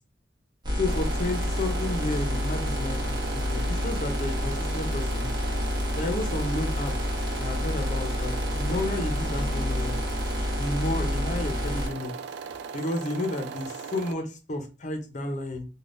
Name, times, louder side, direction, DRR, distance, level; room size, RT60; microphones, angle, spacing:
sound 1, 0.6-11.9, left 1 dB, 25° right, 1.0 m, -28 dB
voice 1, 0.8-5.3 6.0-6.9 7.4-10.0 10.5-12.1 12.7-15.7, left 1 dB, 40° left, 5 dB, 0.7 m, -31 dB
sound 2, 0.9-14.1, right 6 dB, 70° right, 0.3 m, -38 dB
3.4 x 2.3 x 2.5 m, 0.31 s
head